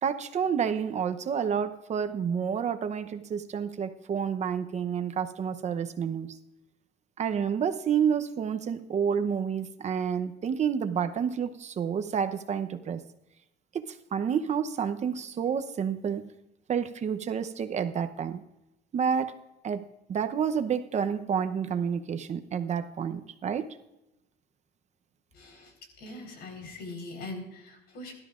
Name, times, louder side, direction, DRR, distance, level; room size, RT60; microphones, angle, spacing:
voice 1, 0.0-6.3 7.2-13.0 13.7-16.2 16.7-18.4 18.9-19.3 19.6-19.8 20.1-23.7, right 7 dB, 45° right, 9 dB, 0.8 m, -29 dB
voice 2, 25.3-25.7 26.0-28.2, left 2 dB, 75° left, 3 dB, 4.2 m, -41 dB
22.0 x 12.5 x 2.5 m, 0.91 s
cardioid pair, 110°, 17 cm